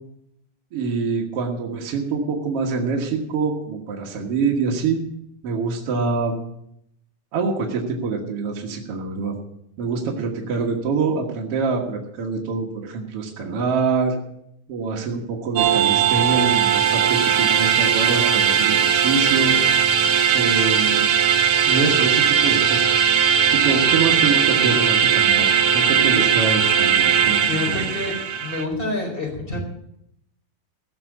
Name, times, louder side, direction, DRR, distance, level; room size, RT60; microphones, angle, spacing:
voice 1, 0.7-5.0 5.4-6.4 7.3-9.3 9.8-14.2 14.7-19.5 20.3-21.1 21.7-23.0 23.5-27.8, right 4 dB, 55° right, 0 dB, 2.3 m, -25 dB
sound 1, 15.6-28.6, right 8 dB, 75° right, 2.4 m, -18 dB
voice 2, 27.5-28.1 28.4-29.6, left 2 dB, 15° left, 0 dB, 4.0 m, -27 dB
16.5 x 6.0 x 8.3 m, 0.75 s
omnidirectional pair, 3.4 m